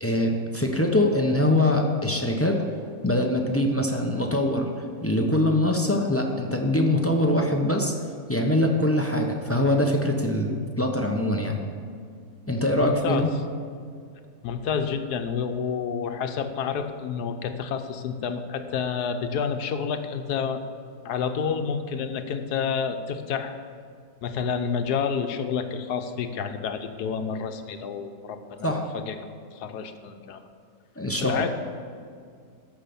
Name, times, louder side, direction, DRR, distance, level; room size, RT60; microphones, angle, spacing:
voice 1, 0.0-2.6 3.0-4.7 5.0-7.9 8.3-11.6 12.5-13.3 28.6-28.9 31.0-31.4, left 1 dB, 10° left, 2 dB, 0.7 m, -23 dB
voice 2, 12.6-13.3 14.4-20.6 21.0-23.6 24.2-29.2 29.5-30.4 31.2-31.5, left 6 dB, 80° left, 7 dB, 1.3 m, -29 dB
13.5 x 5.8 x 6.9 m, 2.2 s
omnidirectional pair, 1.7 m